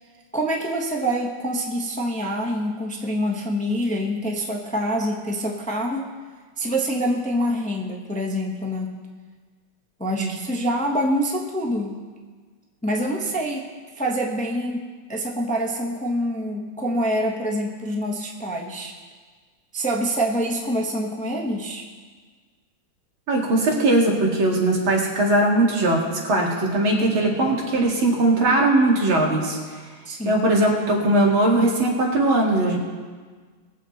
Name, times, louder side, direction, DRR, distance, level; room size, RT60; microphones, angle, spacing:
voice 1, 0.3-6.1 6.6-9.0 10.0-12.0 12.8-13.7 14.0-18.9 19.7-21.8 30.1-30.4, equal, 5° left, 0 dB, 0.8 m, -26 dB
voice 2, 23.3-29.6 30.2-32.8, right 2 dB, 75° right, -1 dB, 2.9 m, -20 dB
20.5 x 7.7 x 4.2 m, 1.5 s
omnidirectional pair, 2.2 m